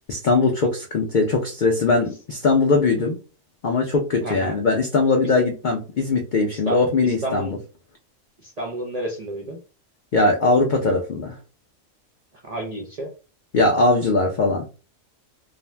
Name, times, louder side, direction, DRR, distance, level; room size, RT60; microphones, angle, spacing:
voice 1, 0.1-3.2 3.6-7.6 10.1-11.3 13.5-14.7, left 3 dB, 75° left, 1 dB, 0.4 m, -20 dB
voice 2, 4.2-4.6 5.2-5.3 6.5-7.5 8.4-9.6 12.4-13.1, right 1 dB, 60° right, 0 dB, 0.4 m, -31 dB
2.5 x 2.1 x 3.2 m, 0.33 s
omnidirectional pair, 1.4 m